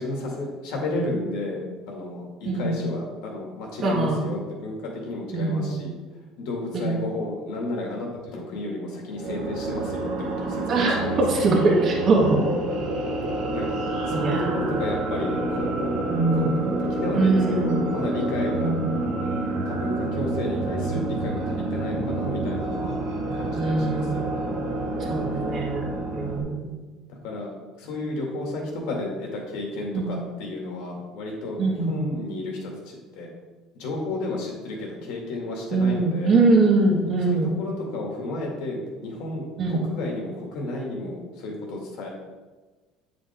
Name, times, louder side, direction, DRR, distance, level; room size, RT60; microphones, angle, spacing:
voice 1, 0.0-5.9 6.4-11.6 13.5-16.0 16.3-18.7 19.2-23.0 23.3-24.5 27.2-27.5 27.8-33.3 33.7-36.4 37.3-42.1, left 2 dB, 75° left, 0 dB, 2.1 m, -32 dB
voice 2, 2.4-2.8 3.8-4.3 5.3-5.8 6.7-7.0 10.7-12.5 14.1-14.4 16.1-16.6 17.1-17.8 18.5-18.9 23.5-24.1 25.0-25.9 26.1-26.8 29.9-30.2 31.6-32.0 35.7-37.6 39.6-39.9, right 3 dB, 40° right, -2 dB, 1.6 m, -22 dB
sound 1, 9.1-26.4, right 2 dB, 85° right, 1.4 m, -28 dB
8.8 x 5.1 x 3.6 m, 1.3 s
cardioid pair, 125°, 0 cm